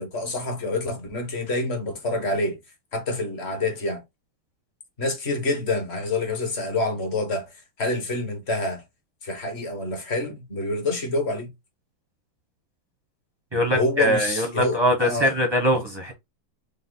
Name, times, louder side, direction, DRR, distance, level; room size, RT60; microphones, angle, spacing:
voice 1, 0.0-2.6 2.9-4.0 5.0-8.8 9.2-11.5 13.7-15.3, left 2 dB, 35° left, 1.3 m, -27 dB
voice 2, 13.5-16.1, equal, 20° right, 0.7 m, -22 dB
5.1 x 2.2 x 3.9 m
omnidirectional pair, 2.2 m